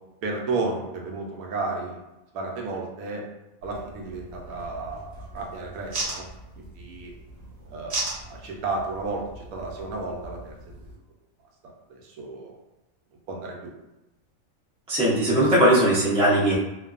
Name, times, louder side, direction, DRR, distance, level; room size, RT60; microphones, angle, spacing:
voice 1, 0.2-2.0 2.3-3.2 3.6-6.2 6.6-7.1 7.7-10.5 11.6-12.5 13.3-13.7, right 3 dB, 85° right, 0 dB, 1.1 m, -33 dB
sound 1, 3.6-11.0, right 2 dB, 55° right, 1.0 m, -38 dB
voice 2, 14.9-16.6, right 1 dB, 10° right, -8 dB, 0.4 m, -19 dB
2.6 x 2.2 x 2.3 m, 0.98 s
omnidirectional pair, 1.5 m